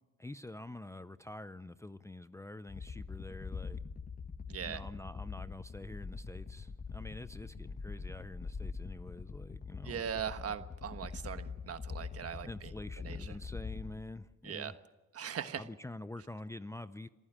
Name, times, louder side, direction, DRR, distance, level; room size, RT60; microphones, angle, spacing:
voice 1, 0.2-3.8 4.6-10.2 12.5-14.8 15.6-17.1, left 2 dB, 10° left, 12 dB, 0.6 m, -46 dB
sound 1, 2.7-14.2, left 5 dB, 30° left, 1.1 m, -44 dB
voice 2, 4.5-4.8 9.8-12.7 13.0-13.3 14.4-14.7 15.1-15.6, right 8 dB, 50° right, 10 dB, 1.3 m, -40 dB
26.5 x 14.5 x 7.4 m, 1.1 s
cardioid pair, 90°, 30 cm